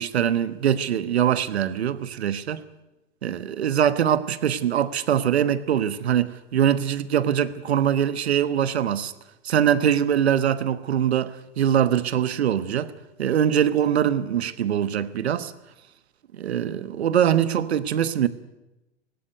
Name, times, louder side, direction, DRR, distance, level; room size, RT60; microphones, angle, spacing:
voice 1, 0.0-2.6 3.2-9.1 9.4-12.9 13.2-15.5 16.3-18.3, right 9 dB, 65° right, 1.3 m, -23 dB
18.5 x 17.0 x 9.4 m
figure-of-eight pair, 90°, 34 cm